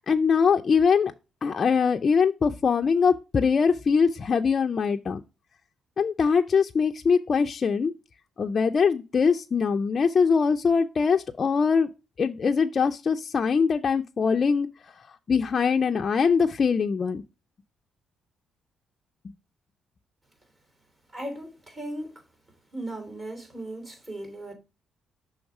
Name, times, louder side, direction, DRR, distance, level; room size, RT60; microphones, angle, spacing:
voice 1, 0.1-1.1 1.4-5.2 6.0-7.9 8.4-11.9 12.2-14.7 15.3-17.2, left 5 dB, 40° left, 0.4 m, -22 dB
voice 2, 21.1-22.2 22.7-24.5, right 1 dB, 35° right, 3.2 m, -37 dB
6.3 x 3.2 x 4.7 m
cardioid pair, 90°, 0 cm